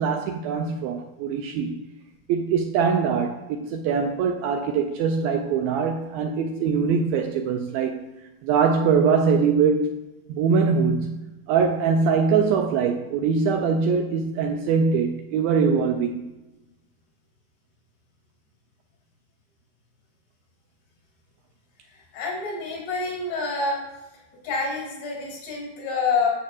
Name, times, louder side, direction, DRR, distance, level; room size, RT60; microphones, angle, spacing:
voice 1, 0.0-1.8 2.3-8.1 8.4-9.9 10.3-16.2, right 5 dB, 85° right, 2.1 m, -22 dB
voice 2, 21.9-23.8 24.4-26.3, left 4 dB, 85° left, 4.9 m, -27 dB
13.0 x 7.0 x 2.5 m
omnidirectional pair, 4.7 m